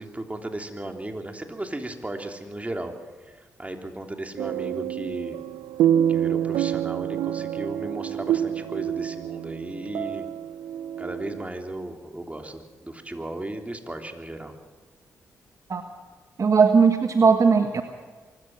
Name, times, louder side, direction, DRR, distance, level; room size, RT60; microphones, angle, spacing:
voice 1, 0.0-2.9 3.2-5.4 6.1-10.3 11.0-14.5, right 1 dB, 20° right, 4 dB, 3.4 m, -35 dB
sound 1, 4.4-11.4, right 10 dB, 80° right, 0.5 m, -27 dB
voice 2, 16.4-17.8, right 5 dB, 50° right, 7 dB, 1.4 m, -18 dB
24.0 x 14.0 x 7.7 m, 1.4 s
hypercardioid pair, 40°, 7 cm